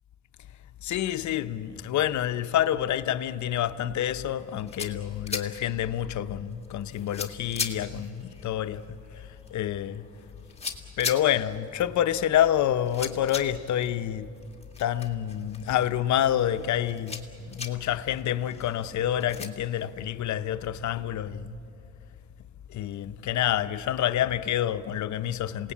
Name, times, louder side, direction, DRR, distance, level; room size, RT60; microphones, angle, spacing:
voice 1, 0.8-10.1 11.0-14.3 14.8-21.6 22.7-25.7, left 11 dB, 70° left, 0.8 m, -28 dB
sound 1, 4.4-19.5, left 5 dB, 20° left, 2.0 m, -41 dB
27.5 x 18.5 x 8.4 m
cardioid pair, 90°, 30 cm